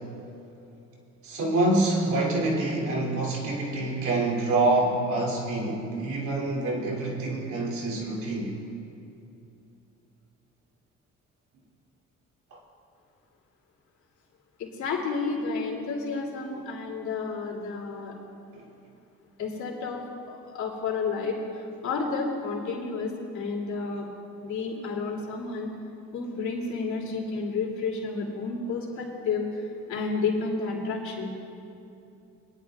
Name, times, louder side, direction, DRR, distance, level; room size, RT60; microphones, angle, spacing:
voice 1, 1.2-8.6 12.5-12.6 18.5-18.7, right 2 dB, 75° right, -3 dB, 2.7 m, -26 dB
voice 2, 14.6-18.1 19.4-24.1 24.4-25.7 26.1-31.3, left 4 dB, 70° left, -3 dB, 2.7 m, -31 dB
22.5 x 10.5 x 2.4 m, 2.7 s
cardioid pair, 90°, 30 cm